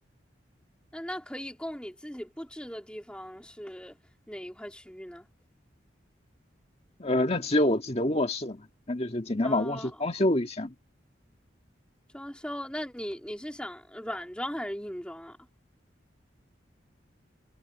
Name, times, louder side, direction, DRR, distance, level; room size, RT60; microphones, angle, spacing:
voice 1, 0.9-4.0 4.3-5.3 9.4-10.1 12.1-15.4, equal, 5° left, 3.0 m, -38 dB
voice 2, 7.0-10.7, left 1 dB, 35° left, 1.9 m, -27 dB
head